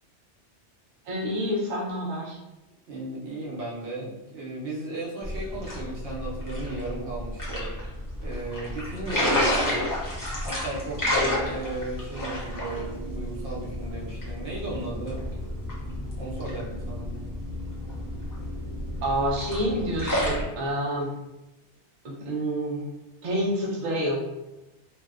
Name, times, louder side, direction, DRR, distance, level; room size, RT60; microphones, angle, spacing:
voice 1, 1.1-2.4 19.0-21.1 22.0-22.9 23.2-24.2, equal, 50° right, -4 dB, 0.6 m, -28 dB
voice 2, 2.9-7.7 8.2-9.8 10.4-15.2 16.2-17.1, right 2 dB, 75° right, -5 dB, 1.0 m, -35 dB
sound 1, 5.2-20.4, left 1 dB, 25° left, 0.4 m, -31 dB
2.5 x 2.1 x 2.3 m, 0.99 s
omnidirectional pair, 1.2 m